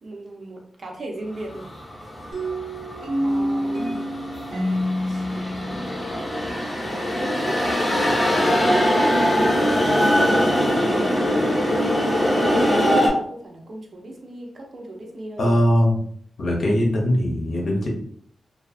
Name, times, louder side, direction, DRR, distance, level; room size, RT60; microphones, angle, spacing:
voice 1, 0.0-1.7 3.2-4.0 5.1-6.5 6.8-7.6 9.3-9.7 10.2-11.4 12.3-15.6, right 1 dB, 50° right, 0 dB, 0.6 m, -37 dB
sound 1, 1.4-13.1, equal, 20° left, 0.7 m, -22 dB
sound 2, 2.3-7.0, equal, 85° right, 1.1 m, -27 dB
voice 2, 15.4-16.0 16.4-17.9, equal, 60° left, 0 dB, 0.7 m, -20 dB
2.4 x 2.3 x 2.5 m, 0.63 s
wide cardioid pair, 130°, 0 cm